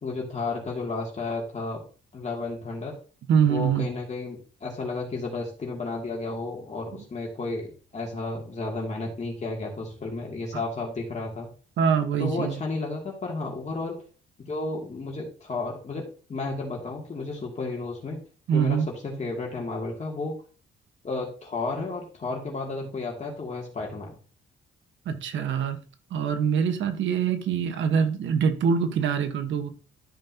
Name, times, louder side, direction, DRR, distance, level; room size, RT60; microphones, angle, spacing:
voice 1, 0.0-1.8 2.1-3.0 3.5-11.5 12.2-14.0 14.4-18.2 18.5-20.4 21.0-24.1, left 3 dB, 35° left, 2.7 m, -32 dB
voice 2, 3.3-3.9 6.9-7.0 10.5-10.6 11.8-12.6 18.5-18.9 25.0-25.8 26.1-29.7, right 7 dB, 75° right, 1.4 m, -24 dB
13.0 x 5.4 x 2.9 m
cardioid pair, 90°, 20 cm